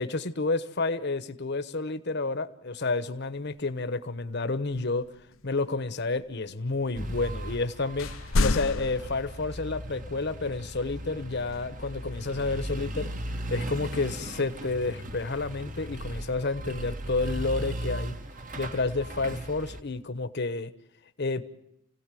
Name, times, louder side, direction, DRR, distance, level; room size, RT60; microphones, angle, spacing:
voice 1, 0.0-5.0 5.4-13.1 13.5-18.1 18.6-20.7 21.2-21.4, left 3 dB, 55° left, 11 dB, 1.2 m, -30 dB
sound 1, 3.4-3.5 4.6-7.6 8.0-10.1 11.4-12.5 14.3-14.9 15.5-16.4, left 3 dB, 80° left, 0.8 m, -33 dB
sound 2, 6.9-19.8, right 1 dB, 40° right, 1.3 m, -37 dB
29.0 x 17.0 x 7.7 m, 0.83 s
head